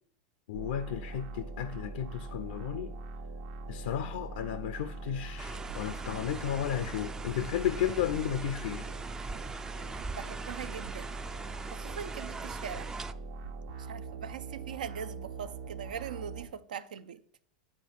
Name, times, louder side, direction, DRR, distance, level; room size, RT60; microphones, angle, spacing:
voice 1, 0.5-2.9 3.7-8.9, left 10 dB, 75° left, 0.5 m, -33 dB
sound 1, 0.5-16.5, right 3 dB, 70° right, 1.1 m, -42 dB
sound 2, 5.4-13.1, right 4 dB, 15° right, 0.3 m, -42 dB
voice 2, 10.0-11.1 11.7-12.9 13.8-17.2, right 8 dB, 90° right, 0.5 m, -41 dB
9.8 x 4.2 x 5.5 m
hypercardioid pair, 120°, 4 cm